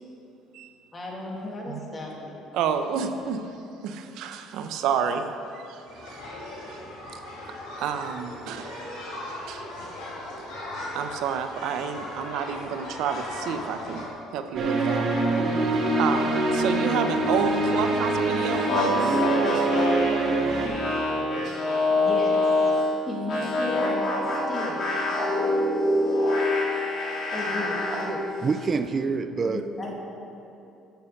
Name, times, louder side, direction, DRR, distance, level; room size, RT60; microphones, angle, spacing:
voice 1, 0.9-2.3 21.9-22.4 23.1-24.0 24.5-24.9 27.3-28.3 29.4-29.9, left 1 dB, 25° left, -2 dB, 2.3 m, -34 dB
voice 2, 2.5-3.6 3.8-5.3 5.5-6.8 7.1-9.7 10.9-14.1 14.3-15.1 15.7-19.2, right 7 dB, 75° right, 7 dB, 0.8 m, -30 dB
sound 1, 5.8-14.1, left 1 dB, 85° left, 2.9 m, -38 dB
sound 2, 14.5-20.7, right 2 dB, 50° right, 2.2 m, -24 dB
sound 3, 18.5-22.9 23.3-28.1, left 2 dB, 50° left, 3.0 m, -25 dB
voice 3, 28.4-29.6, right 4 dB, 30° right, 10 dB, 0.5 m, -26 dB
9.7 x 8.3 x 6.6 m, 2.7 s
cardioid pair, 125°, 0 cm